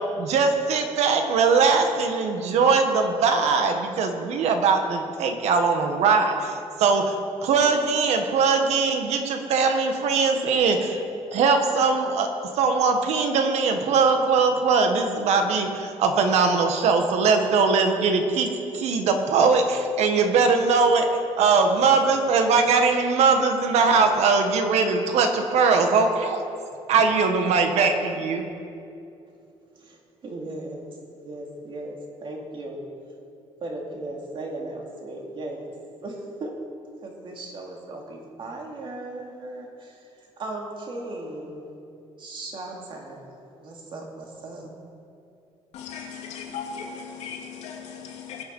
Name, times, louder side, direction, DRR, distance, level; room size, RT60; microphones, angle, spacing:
voice 1, 0.2-7.0 7.4-11.0 11.3-12.3 12.5-21.1 21.4-26.4 26.9-28.4, right 4 dB, 75° right, 5 dB, 1.5 m, -21 dB
voice 2, 30.2-30.9 31.2-32.8 33.6-35.7 36.0-36.5 37.0-40.0 40.4-41.7 42.2-44.7, right 2 dB, 45° right, 0 dB, 2.6 m, -37 dB
voice 3, 45.7-48.4, left 6 dB, 80° left, 1 dB, 2.3 m, -37 dB
21.0 x 7.9 x 5.5 m, 2.6 s
cardioid pair, 130°, 11 cm